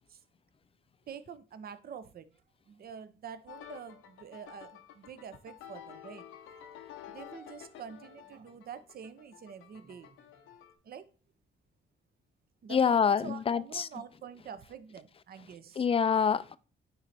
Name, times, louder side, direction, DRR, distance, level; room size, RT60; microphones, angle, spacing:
voice 1, 1.1-2.3 2.7-6.2 7.1-10.5 10.8-11.1 12.6-15.8, right 7 dB, 50° right, 0.7 m, -46 dB
sound 1, 3.5-10.7, left 10 dB, 85° left, 0.8 m, -50 dB
voice 2, 12.7-13.9 15.8-16.6, left 6 dB, 30° left, 0.4 m, -26 dB
9.2 x 3.2 x 4.1 m
cardioid pair, 90°, 20 cm